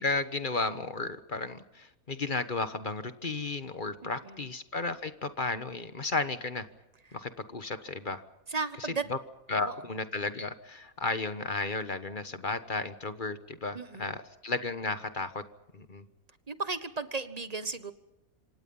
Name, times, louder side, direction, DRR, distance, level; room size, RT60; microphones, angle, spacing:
voice 1, 0.0-6.7 7.1-8.2 9.1-9.2 9.5-15.4 15.7-16.1, left 3 dB, 35° left, 11 dB, 1.4 m, -33 dB
voice 2, 4.0-4.5 8.5-9.0 9.6-9.8 13.7-14.2 16.5-17.9, right 4 dB, 30° right, 12 dB, 1.2 m, -35 dB
27.0 x 25.5 x 5.6 m, 0.95 s
omnidirectional pair, 1.5 m